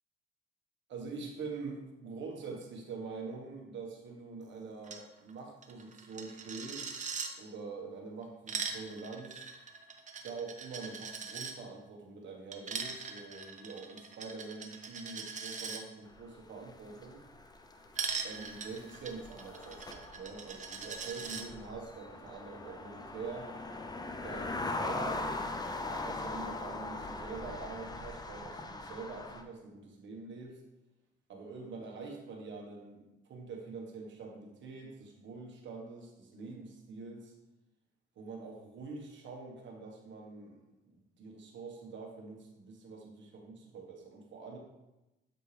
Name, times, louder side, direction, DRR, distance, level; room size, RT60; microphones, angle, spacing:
voice 1, 0.9-9.4 10.2-17.2 18.2-23.5 24.2-25.3 25.8-30.6 31.3-37.3 38.1-44.6, right 4 dB, 70° right, 1 dB, 1.5 m, -45 dB
Coin (dropping), 4.8-5.0 5.3-5.4 5.6-7.3 8.2-11.5 12.5-15.8 17.9-21.4, right 5 dB, 40° right, 0.8 m, -41 dB
sound 1, 16.1-29.4, left 2 dB, 20° left, 0.6 m, -41 dB
8.2 x 4.5 x 3.4 m, 0.98 s
cardioid pair, 90°, 20 cm